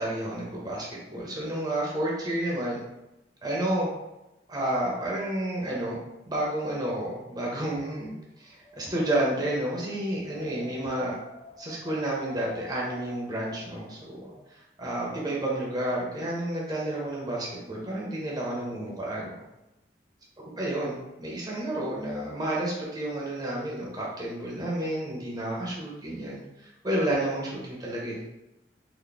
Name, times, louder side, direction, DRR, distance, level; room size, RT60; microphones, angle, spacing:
voice 1, 0.0-2.8 3.4-3.9 4.5-6.0 6.3-11.1 11.6-19.3 20.6-28.2, right 1 dB, 20° right, -4 dB, 0.6 m, -30 dB
Wind, 8.4-14.5, left 1 dB, 25° left, 0.4 m, -50 dB
3.8 x 2.0 x 3.3 m, 0.94 s
head